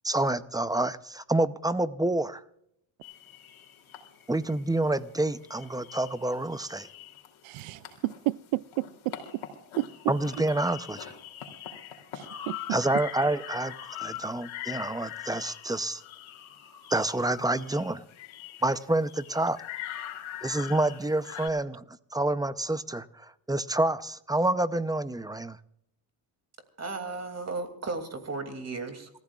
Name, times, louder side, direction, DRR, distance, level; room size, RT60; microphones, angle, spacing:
voice 1, 0.0-2.4 4.3-6.9 10.1-11.1 12.7-16.0 16.9-18.0 18.6-19.6 20.4-25.6, right 2 dB, 10° right, 0.6 m, -28 dB
sound 1, 3.0-21.5, left 11 dB, 70° left, 3.1 m, -43 dB
voice 2, 7.4-9.4 9.8-9.9 12.1-12.8, right 18 dB, 90° right, 0.6 m, -32 dB
voice 3, 26.8-29.1, right 3 dB, 30° right, 2.7 m, -35 dB
27.5 x 14.5 x 2.4 m
cardioid pair, 110°, 50 cm